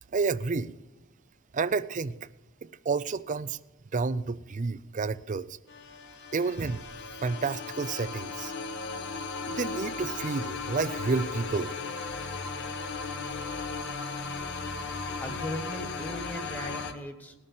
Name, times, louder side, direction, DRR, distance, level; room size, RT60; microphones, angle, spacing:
voice 1, 0.1-0.7 1.5-2.2 2.6-3.6 3.9-5.6 6.3-6.8 7.2-8.5 9.5-11.7, right 4 dB, 35° right, 0.4 m, -30 dB
sound 1, 5.7-16.9, left 4 dB, 55° left, 1.4 m, -36 dB
voice 2, 14.9-17.3, equal, 10° left, 1.4 m, -38 dB
19.0 x 6.6 x 7.2 m
head